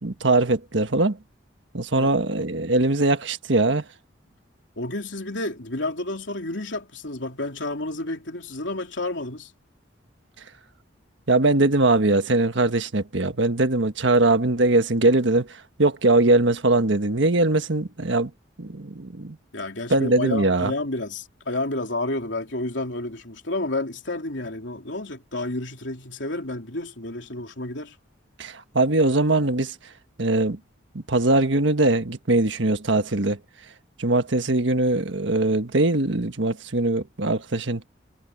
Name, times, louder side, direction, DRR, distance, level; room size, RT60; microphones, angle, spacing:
voice 1, 0.0-1.2 1.7-3.8 11.3-18.3 18.6-19.4 19.9-20.7 28.4-29.7 30.2-30.6 30.9-33.4 34.0-37.9, right 2 dB, 75° right, 1.5 m, -21 dB
voice 2, 4.8-9.5 19.5-27.9, left 2 dB, 75° left, 3.3 m, -30 dB
head